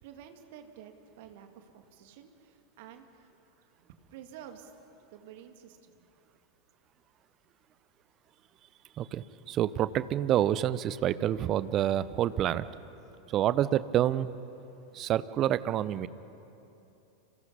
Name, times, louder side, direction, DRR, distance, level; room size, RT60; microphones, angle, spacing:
voice 1, 0.0-3.3 3.6-4.7 5.1-6.1, right 9 dB, 50° right, 6 dB, 2.3 m, -50 dB
voice 2, 9.0-12.7 13.3-14.3 14.9-16.1, right 11 dB, 30° right, 16 dB, 0.8 m, -28 dB
30.0 x 27.5 x 5.5 m, 2.9 s
figure-of-eight pair, 90°, 0 cm